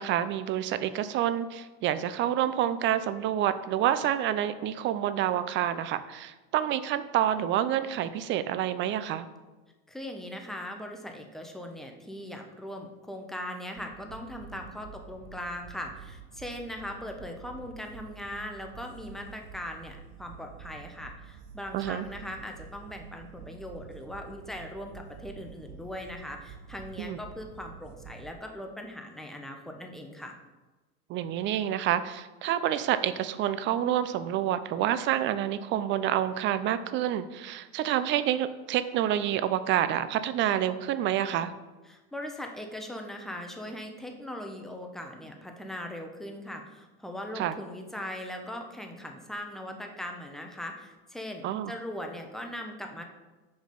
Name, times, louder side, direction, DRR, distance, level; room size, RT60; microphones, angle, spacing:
voice 1, 0.0-9.3 21.7-22.1 27.0-27.2 31.1-41.5 47.4-47.5 51.4-51.7, right 11 dB, 35° right, 13 dB, 0.4 m, -28 dB
voice 2, 9.9-30.4 41.9-53.0, left 1 dB, ahead, 3 dB, 0.7 m, -40 dB
sound 1, 13.8-28.3, right 7 dB, 75° right, 0.7 m, -48 dB
6.0 x 5.2 x 5.2 m, 1.2 s
supercardioid pair, 140°, 35 cm